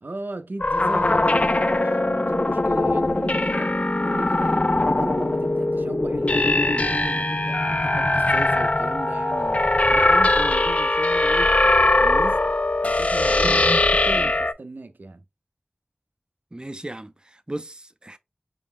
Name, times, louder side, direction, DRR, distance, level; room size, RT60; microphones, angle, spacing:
voice 1, 0.0-3.7 4.0-9.7 9.9-11.5 11.9-12.4 12.8-13.6 14.1-15.2, right 2 dB, 85° right, 0.5 m, -36 dB
sound 1, 0.6-14.5, left 2 dB, 45° left, 0.3 m, -21 dB
voice 2, 13.4-14.3 16.5-18.2, right 1 dB, 30° right, 0.5 m, -36 dB
5.0 x 2.0 x 3.6 m
wide cardioid pair, 40°, 3 cm